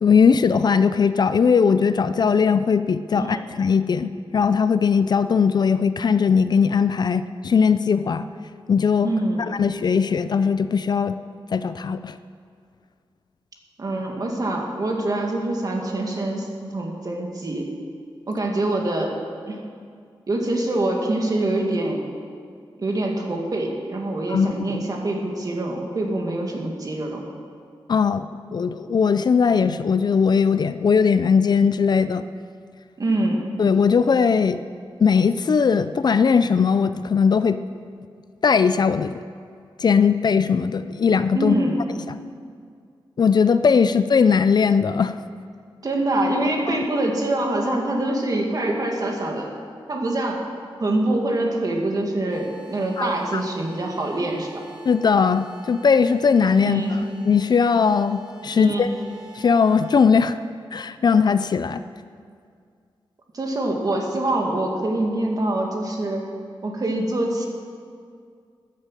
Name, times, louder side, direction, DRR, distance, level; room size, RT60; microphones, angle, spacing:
voice 1, 0.0-8.3 8.7-9.1 9.5-11.1 11.5-12.2 24.3-24.7 27.9-28.3 28.5-32.2 33.6-34.6 35.0-37.6 38.4-39.2 39.8-41.5 42.1-42.2 43.2-45.2 46.7-46.8 53.0-53.4 54.9-56.8 57.3-58.9 59.4-60.4 60.7-61.8, left 6 dB, 50° left, 12 dB, 0.4 m, -19 dB
voice 2, 9.0-9.4 13.8-17.7 18.3-19.1 19.5-19.6 20.3-22.0 22.8-27.2 33.0-33.4 41.3-41.8 45.8-49.5 49.9-50.4 50.8-54.6 56.6-57.0 58.5-58.9 63.3-66.3 66.6-67.5, right 1 dB, 45° right, 0 dB, 2.1 m, -25 dB
sound 1, 52.3-60.0, right 3 dB, 10° right, 2.2 m, -46 dB
13.5 x 10.0 x 7.4 m, 2.2 s
wide cardioid pair, 155°, 9 cm